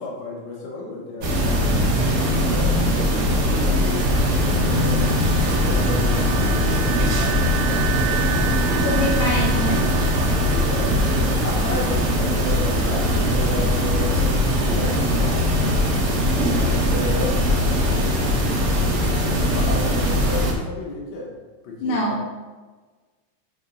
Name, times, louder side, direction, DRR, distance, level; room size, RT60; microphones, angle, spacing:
voice 1, 0.0-1.8 2.2-5.1 5.5-8.2 10.5-14.3 14.7-15.4 16.5-17.4 17.7-18.4 18.7-21.4 21.6-22.2, left 2 dB, 85° left, -3 dB, 1.0 m, -33 dB
sound 1, 1.2-20.5, left 1 dB, 60° right, 1.5 m, -20 dB
sound 2, 3.9-17.2, right 8 dB, 80° right, 2.4 m, -34 dB
voice 2, 8.7-9.9 21.8-22.3, left 1 dB, 60° left, -5 dB, 1.4 m, -24 dB
7.2 x 3.7 x 5.3 m, 1.3 s
omnidirectional pair, 3.9 m